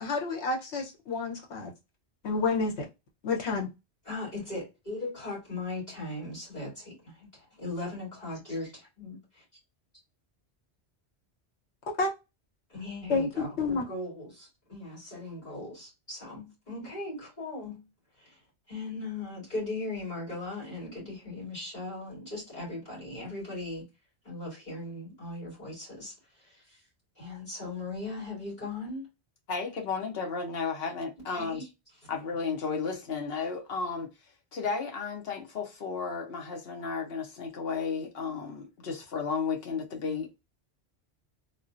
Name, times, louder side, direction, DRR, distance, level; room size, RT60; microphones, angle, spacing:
voice 1, 0.0-1.7 2.2-2.9 3.2-3.7 12.0-12.1 13.1-13.8, left 3 dB, 85° left, 1.2 m, -29 dB
voice 2, 4.0-8.7 9.0-9.2 12.7-17.9 18.1-18.4 18.7-23.9 24.2-26.9 27.1-29.1 30.8-30.9 31.3-31.7, left 2 dB, 40° left, 2.3 m, -38 dB
voice 3, 29.5-31.6 32.1-34.1 34.5-40.4, left 5 dB, 65° left, 1.0 m, -33 dB
3.6 x 2.4 x 2.5 m
omnidirectional pair, 1.1 m